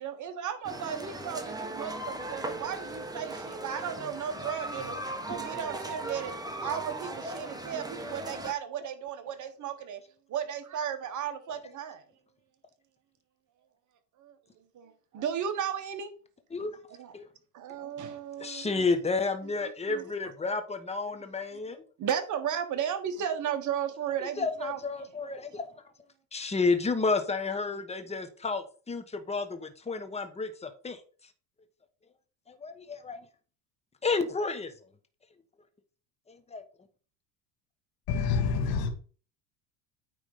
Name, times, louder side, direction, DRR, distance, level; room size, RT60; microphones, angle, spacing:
voice 1, 0.0-5.0 5.3-10.0 10.3-12.0 14.2-14.3 14.7-16.1 17.0-17.1 17.5-18.9 19.9-20.0 22.0-24.8, right 8 dB, 40° right, 1.5 m, -35 dB
sound 1, 0.6-8.5, right 1 dB, 10° right, 1.2 m, -38 dB
voice 2, 18.4-21.8 24.4-25.7 26.3-31.0 32.5-33.2 34.0-34.7 36.3-36.6, left 4 dB, 15° left, 1.2 m, -31 dB
voice 3, 38.1-38.9, left 5 dB, 50° left, 1.9 m, -27 dB
9.2 x 3.7 x 5.0 m
supercardioid pair, 115°, 46 cm